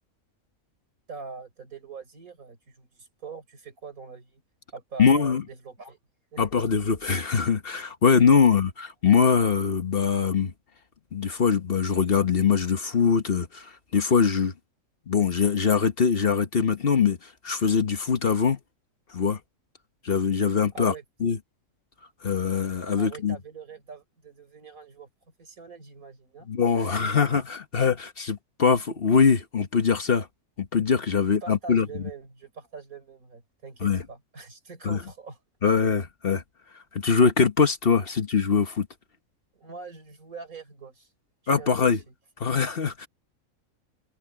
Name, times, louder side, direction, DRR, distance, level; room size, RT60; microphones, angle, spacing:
voice 1, 1.1-4.4 4.7-6.0 6.3-6.4 8.4-8.5 20.7-21.0 22.9-25.1 25.4-26.5 26.8-27.1 31.2-35.4 39.5-41.1 41.4-42.1, right 5 dB, 85° right, 4.8 m, -43 dB
voice 2, 5.0-5.4 6.4-10.5 11.1-14.5 15.1-18.6 19.1-19.4 20.0-20.9 21.2-21.4 22.2-23.4 26.5-30.3 30.6-31.9 33.8-34.0 34.8-35.0 35.6-36.4 36.9-38.9 41.5-42.0 42.4-43.1, left 6 dB, 45° left, 1.2 m, -22 dB
omnidirectional pair, 1.4 m